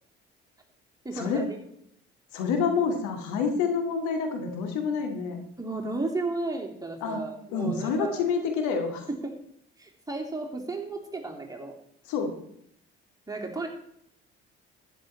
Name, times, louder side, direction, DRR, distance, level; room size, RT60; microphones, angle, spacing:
voice 1, 1.0-1.4 5.6-8.2 9.1-9.4 9.8-11.8 13.3-13.7, right 3 dB, 10° right, 1 dB, 3.2 m, -33 dB
voice 2, 2.3-5.4 7.0-7.2 7.5-9.0 12.1-12.3, left 5 dB, 65° left, 4 dB, 2.3 m, -27 dB
12.0 x 10.0 x 4.4 m, 0.72 s
figure-of-eight pair, 50°, 31 cm